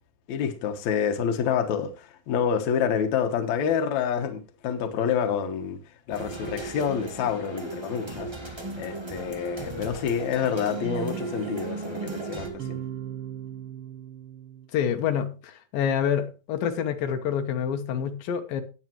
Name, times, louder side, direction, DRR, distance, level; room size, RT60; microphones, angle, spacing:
voice 1, 0.3-5.8 6.1-12.8, left 7 dB, 65° left, 2.3 m, -28 dB
sound 1, 6.1-12.5, right 2 dB, 40° right, 0.4 m, -37 dB
sound 2, 10.7-14.7, right 10 dB, 80° right, 1.2 m, -37 dB
voice 2, 14.7-18.6, left 8 dB, 80° left, 2.8 m, -27 dB
18.5 x 7.3 x 3.1 m
omnidirectional pair, 4.0 m